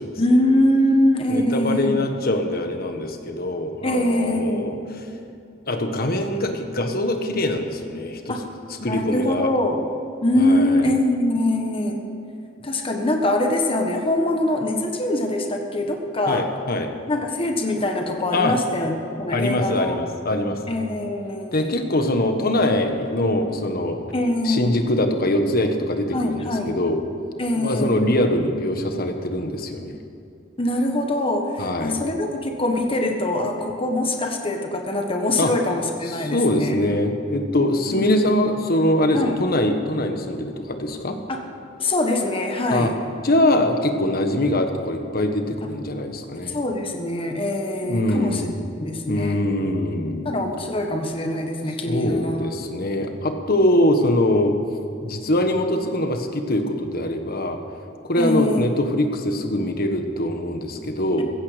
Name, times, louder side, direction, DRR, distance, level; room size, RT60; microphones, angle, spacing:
voice 1, 0.2-2.1 3.8-4.8 8.3-8.4 8.8-9.8 10.2-12.0 12.6-16.5 17.1-20.0 20.7-21.5 24.1-24.8 26.1-26.8 27.4-28.0 30.6-36.8 37.9-38.4 39.1-39.4 41.3-41.4 41.8-42.9 46.5-48.4 48.8-49.4 50.2-52.4 58.2-58.7, left 1 dB, 30° left, 3 dB, 1.4 m, -23 dB
voice 2, 1.3-5.0 5.7-8.4 8.8-9.5 10.4-10.9 16.3-16.9 18.3-18.5 19.3-20.6 21.5-24.0 24.4-27.0 27.5-29.9 31.6-32.0 35.4-35.5 36.0-41.2 42.7-42.9 43.2-46.6 47.8-48.6 49.1-50.3 51.9-54.6 55.0-57.6 58.0-61.2, left 1 dB, 50° left, 5 dB, 1.5 m, -23 dB
15.5 x 15.5 x 5.2 m, 2.7 s
head